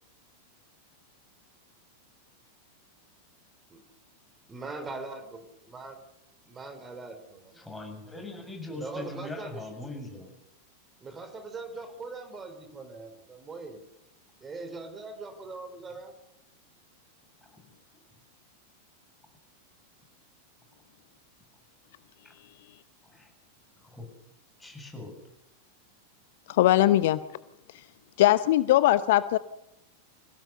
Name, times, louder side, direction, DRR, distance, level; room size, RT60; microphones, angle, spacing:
voice 1, 4.5-5.4 5.7-6.0 6.5-7.7 8.7-9.9 11.0-13.8 14.4-16.1, right 3 dB, 20° right, 8 dB, 4.0 m, -41 dB
voice 2, 7.5-10.3 17.4-17.6 22.2-22.3 23.0-23.3 23.8-24.1 24.6-25.1, left 2 dB, 5° left, 3 dB, 7.3 m, -41 dB
voice 3, 26.5-27.2 28.2-29.4, left 14 dB, 55° left, 16 dB, 0.8 m, -20 dB
27.0 x 17.0 x 6.9 m, 0.86 s
figure-of-eight pair, 90°, 0 cm